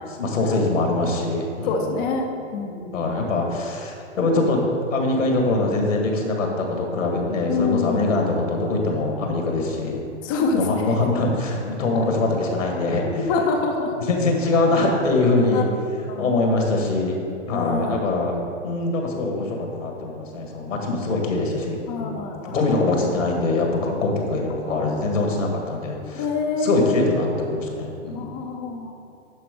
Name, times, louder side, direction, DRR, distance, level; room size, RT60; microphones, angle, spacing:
voice 1, 0.1-2.0 2.9-4.6 4.9-10.0 10.5-13.3 14.0-15.7 16.2-17.2 17.5-22.2 22.4-26.3 26.6-28.3, left 2 dB, 90° left, 1 dB, 1.8 m, -23 dB
voice 2, 1.6-3.2 7.5-8.1 10.2-11.1 13.3-13.9 15.5-15.6 16.1-16.3 17.5-18.1 21.9-22.6 26.1-26.9 28.1-28.9, left 4 dB, 15° left, 2 dB, 0.3 m, -26 dB
10.5 x 4.1 x 5.2 m, 2.6 s
hypercardioid pair, 135°, 37 cm